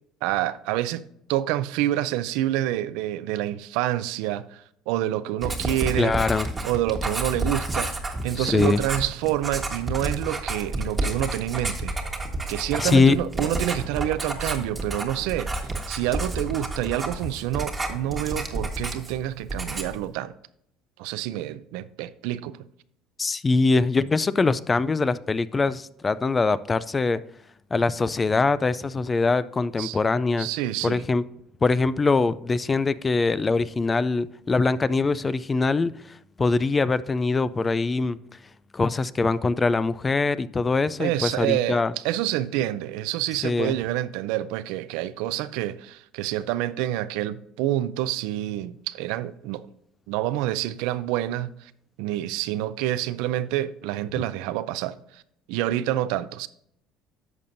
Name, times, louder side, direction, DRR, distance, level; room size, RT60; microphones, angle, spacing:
voice 1, 0.2-1.0 1.3-6.1 6.6-7.9 8.2-11.9 12.5-15.5 15.9-20.3 21.0-22.6 29.8-30.0 30.4-31.0 41.0-49.7 50.1-51.7 52.0-55.2 55.5-56.5, right 13 dB, 85° right, 0.4 m, -27 dB
Writing, 5.4-19.2 19.5-20.0, right 2 dB, 15° right, 1.3 m, -30 dB
voice 2, 6.0-6.5 8.4-8.8 12.8-13.2 23.2-27.2 27.7-30.5 30.8-31.3 31.6-38.2 38.7-41.9 43.4-43.8, left 3 dB, 20° left, 0.3 m, -23 dB
11.0 x 6.8 x 2.6 m
cardioid pair, 135°, 0 cm